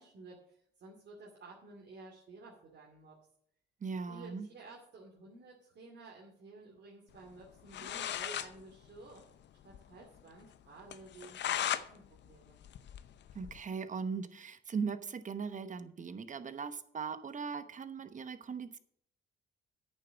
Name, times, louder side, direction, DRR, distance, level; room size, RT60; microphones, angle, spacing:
voice 1, 0.0-3.2 4.1-9.2 9.6-12.6, right 3 dB, 60° right, -3 dB, 2.5 m, -53 dB
voice 2, 3.8-4.5 13.3-18.8, right 5 dB, 40° right, 11 dB, 1.0 m, -39 dB
sound 1, 7.4-7.5 7.7-8.5 8.8-8.9 9.2-9.3 9.7-9.8 10.2-10.3 10.9-11.9 12.2-13.6, left 11 dB, 65° left, 0.7 m, -36 dB
9.0 x 6.9 x 7.0 m, 0.66 s
cardioid pair, 90°, 20 cm